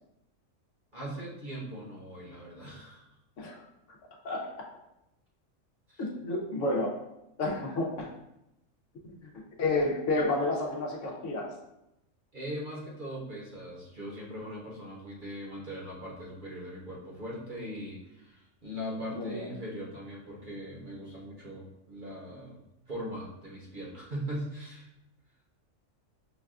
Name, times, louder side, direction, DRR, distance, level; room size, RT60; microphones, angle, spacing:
voice 1, 0.9-3.0 5.9-6.0 12.3-24.9, equal, 45° right, -5 dB, 0.9 m, -40 dB
voice 2, 6.0-7.0 7.4-8.1 9.0-9.1 9.6-11.5 19.1-19.5, left 2 dB, 70° left, -1 dB, 1.0 m, -30 dB
6.0 x 2.2 x 2.4 m, 0.86 s
omnidirectional pair, 1.4 m